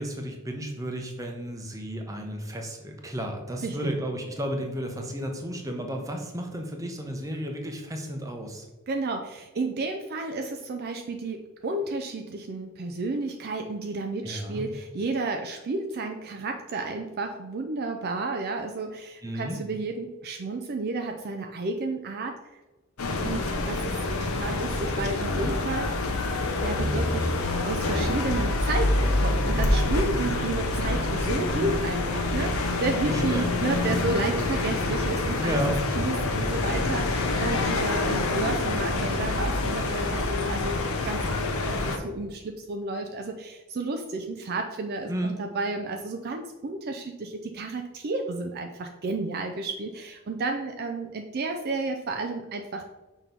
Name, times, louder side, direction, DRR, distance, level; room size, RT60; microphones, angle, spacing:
voice 1, 0.0-8.6 14.2-14.7 19.2-19.6 33.1-33.9 35.4-35.8 45.1-45.4, equal, 15° right, 3 dB, 0.8 m, -33 dB
voice 2, 8.9-22.3 23.2-25.9 26.6-35.6 36.0-45.1 45.4-52.8, right 3 dB, 45° right, 4 dB, 0.4 m, -32 dB
sound 1, 23.0-42.0, left 2 dB, 70° left, 0.8 m, -26 dB
6.0 x 3.0 x 5.2 m, 1.2 s
head